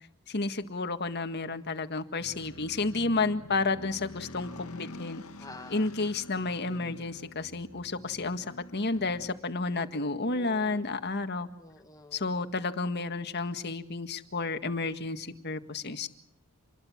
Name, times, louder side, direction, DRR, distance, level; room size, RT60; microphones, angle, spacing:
voice 1, 0.3-5.2 5.7-8.4 8.7-11.5 12.1-16.1, left 3 dB, 50° left, 9 dB, 1.8 m, -31 dB
sound 1, 2.2-9.3, left 2 dB, 90° left, 2.1 m, -47 dB
voice 2, 5.4-5.8 9.7-10.8 11.6-12.2, left 2 dB, 15° left, 6 dB, 1.7 m, -49 dB
27.5 x 21.5 x 7.4 m, 0.71 s
head